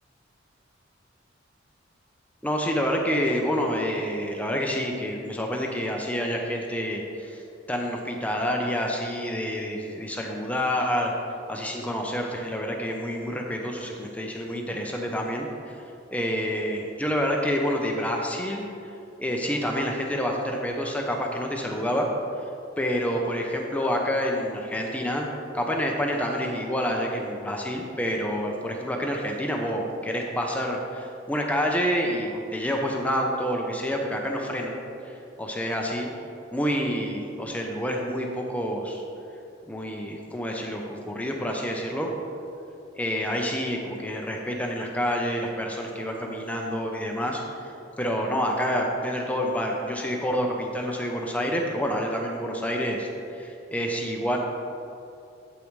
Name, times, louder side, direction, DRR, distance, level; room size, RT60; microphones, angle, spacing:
voice 1, 2.4-7.4 7.7-11.1 11.5-15.8 16.1-18.7 19.2-22.1 22.8-25.3 25.5-36.1 36.5-39.0 39.7-42.1 42.9-47.6 48.0-54.4, equal, 5° left, 1 dB, 0.6 m, -28 dB
8.4 x 8.4 x 3.1 m, 2.7 s
head